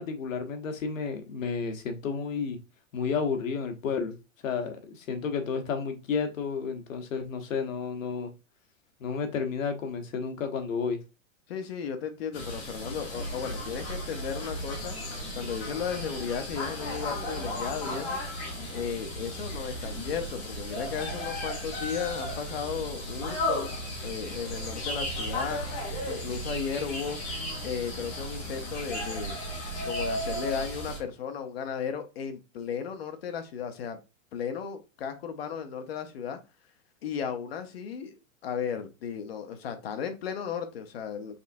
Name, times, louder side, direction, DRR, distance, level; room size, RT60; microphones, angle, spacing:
voice 1, 0.0-2.6 2.9-4.1 4.4-8.3 9.0-11.0, left 5 dB, 70° left, 6 dB, 1.1 m, -31 dB
voice 2, 11.5-14.9 15.4-18.2 18.7-27.2 27.6-29.4 29.8-34.0 34.3-36.4 37.0-38.1 38.4-41.4, left 7 dB, 45° left, 7 dB, 0.9 m, -35 dB
sound 1, 12.3-31.0, equal, 15° left, 0.9 m, -35 dB
5.4 x 3.4 x 2.6 m, 0.28 s
supercardioid pair, 175°, 41 cm